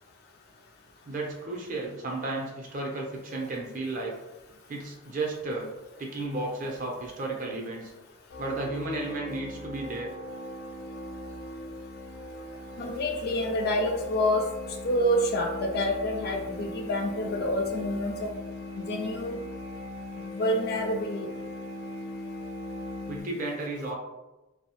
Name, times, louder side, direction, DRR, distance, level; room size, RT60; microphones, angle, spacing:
voice 1, 1.1-4.2 4.7-5.7 6.0-7.9 8.4-10.1 23.1-23.9, right 2 dB, 40° right, -1 dB, 0.5 m, -33 dB
sound 1, 8.3-23.2, left 1 dB, 75° left, 0.7 m, -39 dB
voice 2, 12.8-14.4 14.8-18.3 18.8-19.4 20.3-21.3, left 1 dB, 45° left, 2 dB, 0.3 m, -27 dB
2.7 x 2.0 x 2.8 m, 1.0 s
head